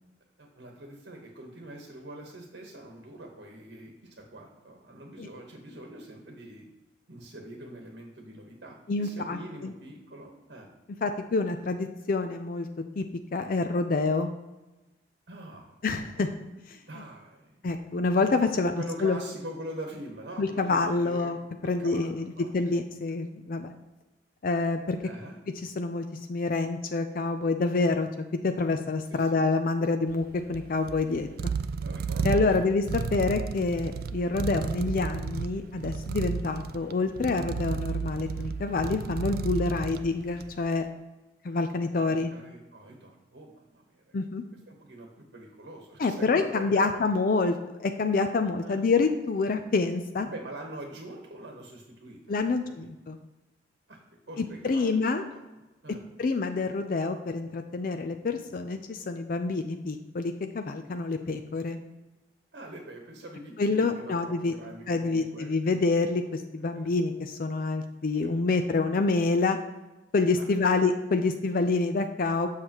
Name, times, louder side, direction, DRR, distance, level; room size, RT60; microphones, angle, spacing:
voice 1, 0.4-6.7 7.1-10.7 15.3-16.0 16.9-17.6 18.6-22.7 25.0-25.4 29.1-29.5 31.8-32.7 39.8-40.0 41.9-44.2 44.7-46.8 48.6-48.8 50.2-52.9 53.9-54.0 54.3-56.0 62.5-65.8 66.6-66.9 68.2-68.3 70.4-70.7, right 1 dB, 85° right, 1 dB, 1.2 m, -44 dB
voice 2, 8.9-9.7 11.0-12.7 13.0-13.1 13.3-14.3 15.8-16.3 16.7-16.8 17.6-19.2 20.4-21.4 21.7-23.7 24.4-25.0 25.6-28.1 28.4-31.5 32.2-40.9 41.4-42.3 44.1-44.4 46.0-50.3 52.3-53.2 54.4-55.2 56.2-61.8 63.6-64.5 64.9-69.6 70.1-72.5, left 3 dB, 55° left, 7 dB, 0.4 m, -27 dB
sound 1, 30.1-40.7, right 5 dB, 55° right, 0.3 m, -33 dB
7.3 x 6.5 x 2.9 m, 1.1 s
head